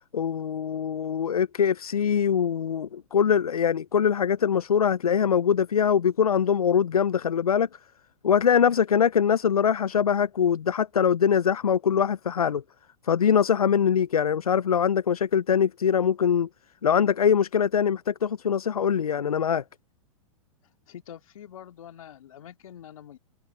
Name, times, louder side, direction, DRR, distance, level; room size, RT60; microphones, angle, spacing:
voice 1, 0.1-7.7 8.2-12.6 13.0-16.5 16.8-19.6, left 7 dB, 90° left, 0.6 m, -23 dB
voice 2, 20.9-23.2, left 10 dB, 70° left, 3.3 m, -45 dB
hypercardioid pair, 110°, 18 cm